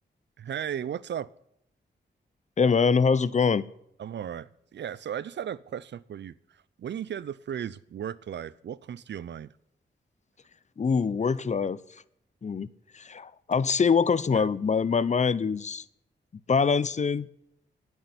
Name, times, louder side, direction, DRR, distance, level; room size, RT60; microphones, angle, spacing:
voice 1, 0.4-1.3 4.0-9.5 14.3-14.5, right 9 dB, 70° right, 0.5 m, -36 dB
voice 2, 2.6-3.6 10.8-11.8 12.4-12.7 12.9-15.8 16.5-17.3, left 5 dB, 40° left, 0.6 m, -24 dB
9.7 x 8.1 x 9.6 m
cardioid pair, 70°, 19 cm